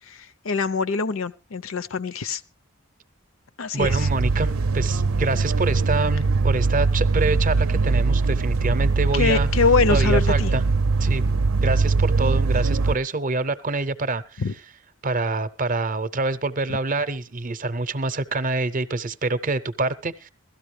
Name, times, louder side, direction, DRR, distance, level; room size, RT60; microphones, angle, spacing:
voice 1, 0.1-2.4 3.6-4.1 9.1-10.5 14.4-14.5, left 4 dB, 80° left, 0.6 m, -24 dB
voice 2, 3.7-9.5 9.9-10.6 11.0-11.2 11.6-14.4 15.0-20.3, right 3 dB, 40° right, 0.6 m, -26 dB
sound 1, 3.8-13.0, right 3 dB, 90° right, 0.6 m, -21 dB
16.5 x 13.0 x 3.2 m
head